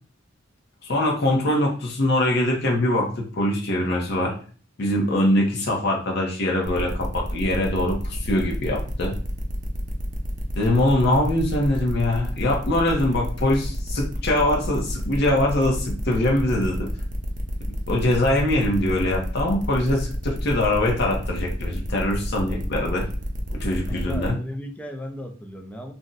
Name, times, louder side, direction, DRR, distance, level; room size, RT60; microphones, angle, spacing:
voice 1, 0.8-4.4 4.8-9.2 10.5-16.9 17.9-23.1 23.5-24.4, left 1 dB, 55° left, 0 dB, 0.7 m, -23 dB
sound 1, 6.6-24.3, equal, 40° right, 0.6 m, -31 dB
voice 2, 23.9-25.9, left 1 dB, 5° left, 3 dB, 0.4 m, -36 dB
2.5 x 2.1 x 3.7 m, 0.42 s
head